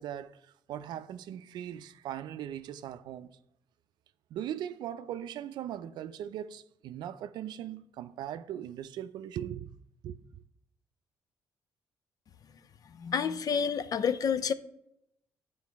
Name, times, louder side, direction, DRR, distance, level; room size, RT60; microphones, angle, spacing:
voice 1, 0.0-3.4 4.3-9.7 10.0-10.2, right 10 dB, 75° right, 0.5 m, -39 dB
voice 2, 13.0-14.5, left 7 dB, 55° left, 0.6 m, -29 dB
9.6 x 4.7 x 3.5 m
supercardioid pair, 70°, 8 cm